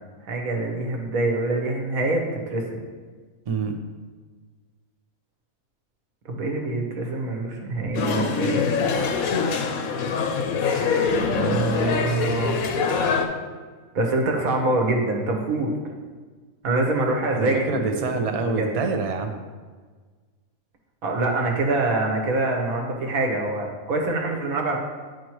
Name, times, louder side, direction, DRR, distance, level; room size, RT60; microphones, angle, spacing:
voice 1, 0.2-2.8 6.3-8.7 11.3-12.6 13.9-15.7 16.6-18.7 21.0-24.8, right 2 dB, 90° right, 1 dB, 1.5 m, -25 dB
voice 2, 3.5-3.8 17.3-19.4, right 4 dB, 50° right, 5 dB, 0.4 m, -26 dB
sound 1, 7.9-13.3, left 5 dB, 90° left, 1.1 m, -24 dB
9.3 x 5.0 x 3.0 m, 1.5 s
omnidirectional pair, 1.4 m